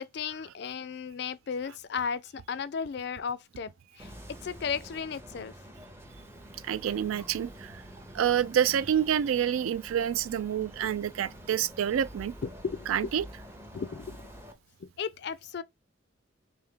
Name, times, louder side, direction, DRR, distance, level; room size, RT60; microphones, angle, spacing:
voice 1, 0.0-3.7 4.0-4.1 4.4-5.5 12.4-13.1 13.7-14.2 14.8-15.6, left 6 dB, 55° left, 0.3 m, -35 dB
sound 1, 4.0-14.5, equal, 10° right, 0.5 m, -47 dB
voice 2, 6.6-7.8 8.1-12.3 12.9-13.2, right 9 dB, 90° right, 0.3 m, -28 dB
3.4 x 2.6 x 3.6 m
head